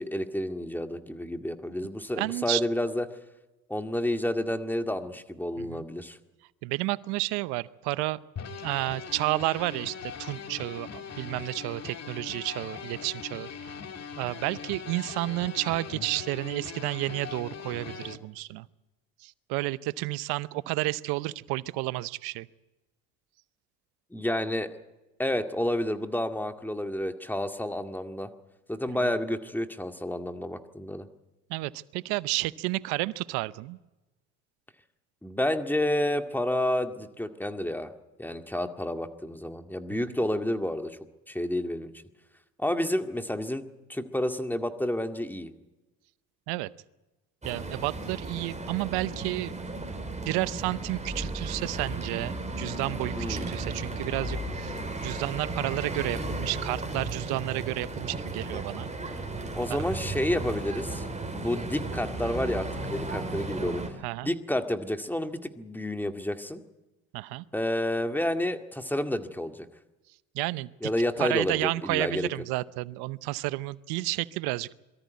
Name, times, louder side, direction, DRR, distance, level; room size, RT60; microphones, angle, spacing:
voice 1, 0.0-3.1 3.7-6.2 24.1-24.7 25.2-28.3 28.7-31.1 35.2-37.9 38.2-41.0 41.3-41.9 42.6-43.6 43.9-45.5 53.1-53.5 59.5-61.1 61.3-63.8 64.2-66.6 67.5-69.7 70.8-72.3, left 1 dB, 5° left, 6 dB, 2.0 m, -30 dB
voice 2, 2.2-2.6 5.6-5.8 6.6-8.2 8.6-13.7 14.2-18.7 19.2-22.5 31.5-33.8 39.9-40.0 46.5-46.7 47.4-49.5 50.3-54.7 55.0-58.9 64.0-64.3 67.1-67.4 70.3-70.9 71.2-74.7, right 19 dB, 80° right, 18 dB, 0.8 m, -31 dB
sound 1, 8.4-18.2, left 6 dB, 40° left, 1.9 m, -41 dB
sound 2, 47.4-63.9, right 2 dB, 20° right, 4.6 m, -35 dB
23.0 x 13.5 x 9.4 m, 1.1 s
supercardioid pair, 75°, 38 cm